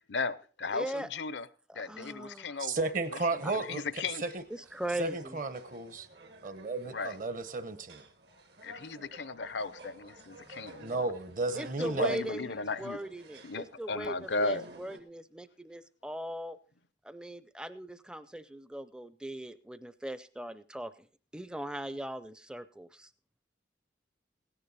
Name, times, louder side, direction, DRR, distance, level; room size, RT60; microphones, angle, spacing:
voice 1, 0.0-1.5 1.7-2.9 3.3-4.2 6.9-7.1 8.6-11.0 11.8-13.0 13.4-14.6, left 3 dB, 80° left, 0.7 m, -36 dB
voice 2, 0.7-1.1 1.7-2.6 3.4-3.5 4.5-5.4 11.5-16.6 17.0-21.1 21.3-23.1, right 1 dB, 5° right, 0.5 m, -39 dB
voice 3, 2.6-3.8 4.2-4.3 5.0-6.1 6.4-8.0 10.8-12.2, right 3 dB, 45° right, 1.0 m, -33 dB
sound 1, 2.7-15.0, right 2 dB, 70° right, 1.6 m, -53 dB
16.5 x 10.0 x 4.1 m
head